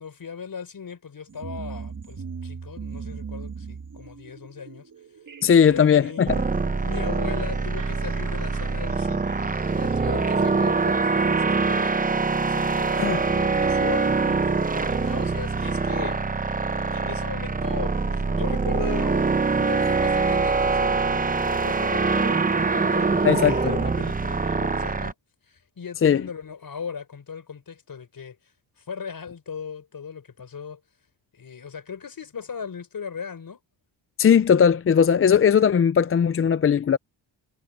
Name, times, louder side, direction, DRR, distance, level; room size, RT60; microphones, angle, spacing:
voice 1, 0.0-4.9 5.6-6.3 6.8-9.4 9.7-12.0 12.5-16.2 16.9-19.3 19.5-25.1 25.5-28.4 28.8-30.8 31.3-33.6, left 6 dB, 50° left, 4.7 m, -38 dB
sound 1, 1.3-17.2 18.4-18.5 19.3-19.4 20.0-20.1, right 5 dB, 40° right, 2.8 m, -42 dB
voice 2, 5.4-6.3 13.0-13.2 23.2-23.7 26.0-26.2 34.2-37.0, left 7 dB, 30° left, 0.4 m, -18 dB
sound 2, 6.3-25.1, right 4 dB, 20° right, 0.8 m, -24 dB
wide cardioid pair, 110°, 44 cm